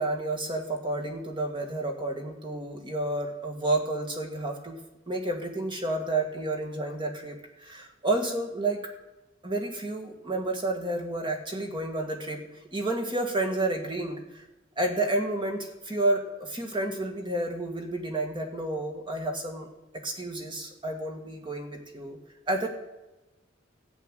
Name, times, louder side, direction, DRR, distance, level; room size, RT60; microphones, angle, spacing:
voice 1, 0.0-4.8 5.1-8.8 9.4-12.4 12.7-14.4 14.8-19.7 20.0-22.2 22.5-22.7, right 2 dB, 25° right, 2 dB, 1.9 m, -30 dB
13.5 x 6.3 x 9.1 m, 1.0 s
head